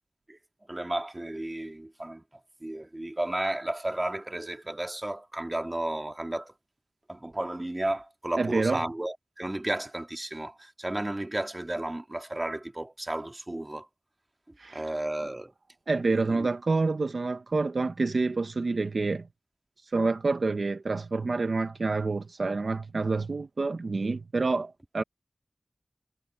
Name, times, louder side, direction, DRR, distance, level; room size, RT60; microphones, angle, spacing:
voice 1, 0.7-2.2 2.6-6.5 7.1-13.9 14.7-15.5 16.3-16.5, right 1 dB, 30° right, 2.3 m, -33 dB
voice 2, 8.4-8.8 14.6-14.8 15.9-19.3 19.9-25.0, right 3 dB, 80° right, 1.0 m, -28 dB
wide cardioid pair, 45°, 0 cm